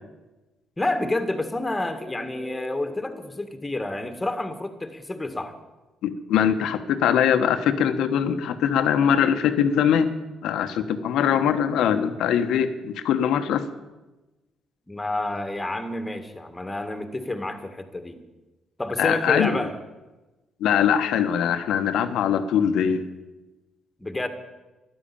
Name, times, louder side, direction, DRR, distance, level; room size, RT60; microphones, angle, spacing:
voice 1, 0.8-5.6 10.6-10.7 14.9-18.2 18.8-19.8 24.0-24.3, left 2 dB, 15° left, 8 dB, 1.8 m, -29 dB
voice 2, 6.0-10.1 10.4-13.7 19.0-19.6 20.6-23.0, left 8 dB, 85° left, 9 dB, 1.2 m, -22 dB
13.0 x 11.0 x 8.7 m, 1.1 s
cardioid pair, 90°, 0 cm